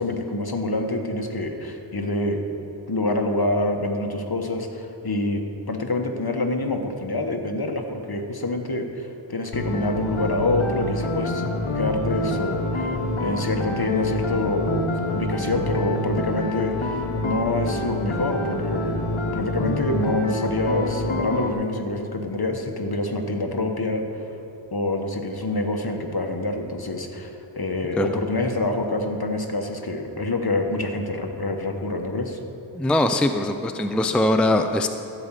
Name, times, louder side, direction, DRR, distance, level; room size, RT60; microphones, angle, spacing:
voice 1, 0.0-2.4 2.9-5.4 5.7-19.0 19.3-24.3 24.7-32.4, left 2 dB, 50° left, 4 dB, 1.2 m, -26 dB
sound 1, 9.5-21.5, left 1 dB, 85° left, 1.1 m, -27 dB
voice 2, 32.7-34.9, left 1 dB, ahead, 6 dB, 0.5 m, -21 dB
15.0 x 5.1 x 7.4 m, 3.0 s
wide cardioid pair, 40°, 47 cm